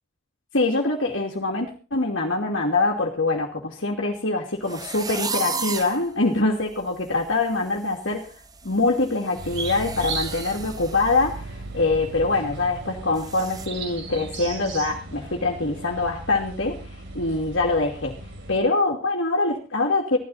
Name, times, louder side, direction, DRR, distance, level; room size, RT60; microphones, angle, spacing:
voice 1, 0.5-8.3 8.6-16.8 17.1-18.1 18.5-20.2, left 3 dB, 65° left, 0 dB, 2.6 m, -24 dB
sound 1, 4.7-6.0 6.6-6.7 7.1-7.3 7.6-11.3 11.6-11.8 12.2-12.3 13.1-13.7, right 5 dB, 20° right, 1.1 m, -34 dB
sound 2, 9.4-18.6, right 3 dB, 55° right, 7.4 m, -36 dB
17.0 x 13.0 x 4.2 m, 0.34 s
head